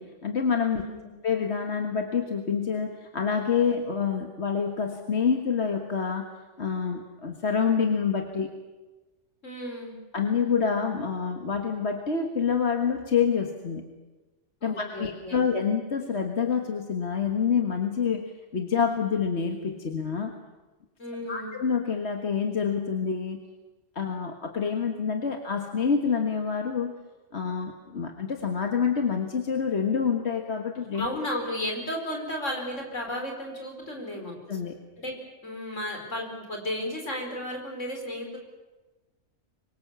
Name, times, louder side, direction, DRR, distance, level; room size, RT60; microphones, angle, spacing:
voice 1, 0.0-0.8 1.2-6.3 6.6-8.5 10.1-14.0 14.6-20.3 21.3-23.4 24.0-27.0 27.3-31.1 34.5-34.8, left 6 dB, 60° left, 3 dB, 1.9 m, -27 dB
voice 2, 0.7-1.1 9.4-10.0 14.6-15.4 21.0-21.5 30.9-34.3 35.0-35.2 35.4-38.4, left 1 dB, 80° left, 2 dB, 5.3 m, -34 dB
25.5 x 23.0 x 7.3 m, 1.2 s
omnidirectional pair, 1.3 m